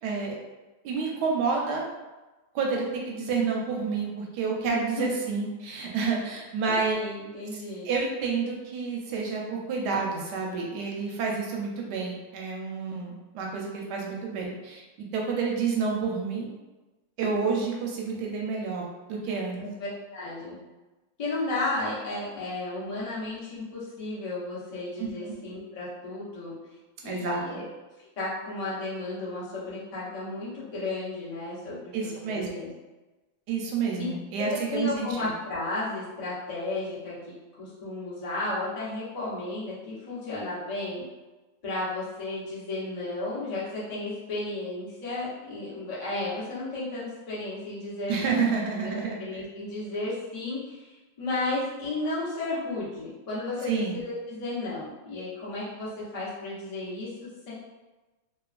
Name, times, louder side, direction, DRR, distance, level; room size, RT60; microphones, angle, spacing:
voice 1, 0.0-0.3 0.8-1.9 2.5-6.9 7.5-16.5 17.2-19.6 25.0-25.3 27.0-27.6 31.9-32.5 33.5-35.3 48.1-49.4 53.7-54.0, right 5 dB, 75° right, -1 dB, 1.0 m, -29 dB
voice 2, 4.7-5.1 6.7-7.9 19.6-20.6 21.2-26.5 27.0-27.7 28.2-32.7 34.0-34.1 34.4-37.1 37.6-41.0 41.6-48.4 48.7-57.5, left 2 dB, 55° left, -9 dB, 0.4 m, -33 dB
3.0 x 2.3 x 2.4 m, 1.1 s
omnidirectional pair, 2.1 m